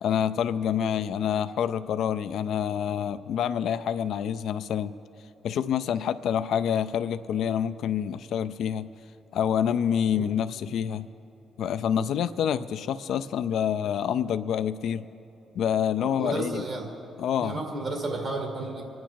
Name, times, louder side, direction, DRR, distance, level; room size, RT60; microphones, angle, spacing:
voice 1, 0.0-4.9 5.4-8.9 9.3-11.1 11.6-15.0 15.6-16.7 17.2-17.6, left 8 dB, 75° left, 12 dB, 0.4 m, -27 dB
voice 2, 16.0-16.9 17.4-18.8, right 2 dB, 65° right, 1 dB, 2.2 m, -32 dB
24.5 x 9.3 x 4.5 m, 2.9 s
cardioid pair, 75°, 0 cm